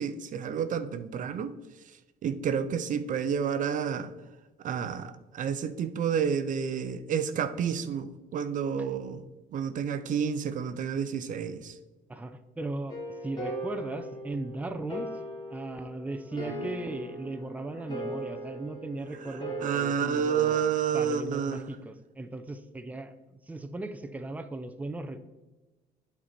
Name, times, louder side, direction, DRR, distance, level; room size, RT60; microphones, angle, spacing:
voice 1, 0.0-1.5 2.2-4.1 4.6-9.2 9.5-11.7 19.6-21.6, right 7 dB, 50° right, 11 dB, 0.5 m, -30 dB
voice 2, 12.1-15.1 15.5-20.7 20.9-25.2, right 2 dB, 10° right, 7 dB, 0.5 m, -37 dB
sound 1, 12.9-19.8, right 1 dB, 25° left, 2.1 m, -39 dB
8.7 x 4.6 x 4.2 m, 1.1 s
cardioid pair, 110°, 17 cm